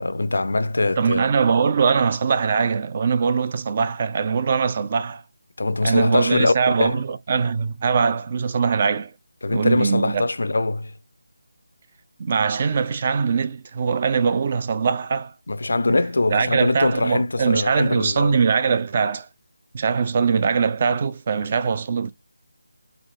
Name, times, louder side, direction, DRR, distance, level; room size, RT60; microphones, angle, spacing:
voice 1, 0.0-1.2 5.6-6.5 6.8-6.9 9.4-10.9 15.5-18.4, left 2 dB, 55° left, 0.4 m, -22 dB
voice 2, 1.0-5.2 5.8-9.1 9.5-10.3 12.2-15.3 15.9-16.0 16.3-19.3 19.7-22.1, right 5 dB, 30° right, 0.3 m, -22 dB
4.1 x 2.4 x 2.9 m
figure-of-eight pair, 155°, 0 cm